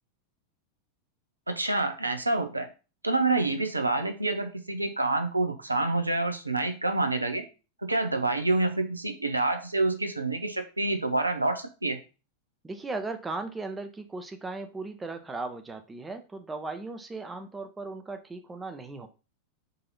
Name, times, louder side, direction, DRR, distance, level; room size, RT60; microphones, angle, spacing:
voice 1, 1.5-2.7 3.0-7.4 7.8-12.0, right 2 dB, 85° right, 7 dB, 0.5 m, -27 dB
voice 2, 12.6-19.1, right 3 dB, 15° right, 7 dB, 0.6 m, -37 dB
4.0 x 2.7 x 3.9 m, 0.32 s
figure-of-eight pair, 90°, 0 cm